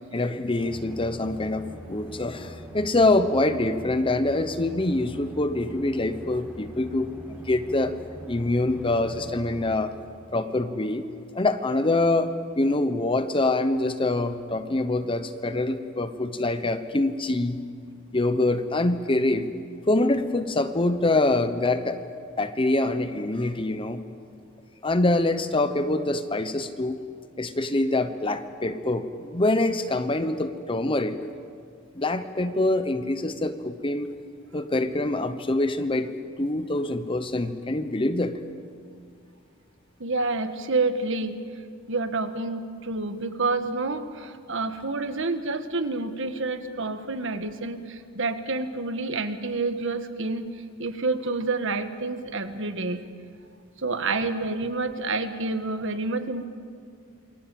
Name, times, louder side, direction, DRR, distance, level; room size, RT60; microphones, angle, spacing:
voice 1, 0.1-8.0 8.3-9.9 10.3-11.0 11.3-17.6 18.1-19.5 19.9-22.0 22.4-24.0 24.8-27.0 27.4-31.2 32.0-34.1 34.5-36.1 36.4-38.4, left 2 dB, 25° left, 10 dB, 0.9 m, -25 dB
sound 1, 0.6-9.8, equal, 10° right, 3.9 m, -43 dB
voice 2, 40.0-41.4 41.9-50.5 50.8-53.0 53.8-56.5, right 3 dB, 60° right, 9 dB, 1.6 m, -28 dB
28.0 x 23.5 x 7.7 m, 2.2 s
head